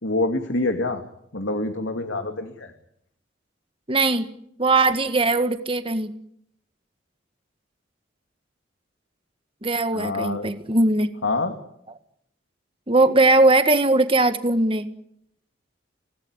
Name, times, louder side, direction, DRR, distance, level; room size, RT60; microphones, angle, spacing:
voice 1, 0.0-1.0 1.3-2.7 9.9-10.5 11.2-11.5, left 2 dB, 80° left, 6 dB, 2.6 m, -26 dB
voice 2, 3.9-4.3 4.6-6.1 9.6-11.1 12.9-14.9, right 2 dB, 30° right, 9 dB, 1.8 m, -19 dB
26.5 x 19.0 x 9.9 m, 0.74 s
head